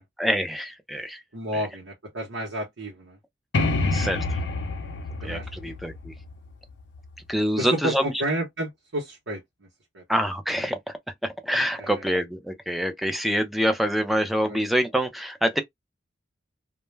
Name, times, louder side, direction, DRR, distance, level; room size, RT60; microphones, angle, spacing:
voice 1, 0.2-1.2 1.5-1.6 3.9-4.4 5.2-6.1 7.3-8.1 10.1-10.9 11.2-15.6, equal, ahead, 0.4 m, -26 dB
voice 2, 1.3-3.2 5.2-5.7 7.6-9.7 9.9-10.0 11.8-11.9 14.5-14.6, right 1 dB, 85° right, 0.8 m, -31 dB
sound 1, 3.5-7.2, left 3 dB, 70° left, 0.5 m, -28 dB
2.2 x 2.0 x 3.1 m
head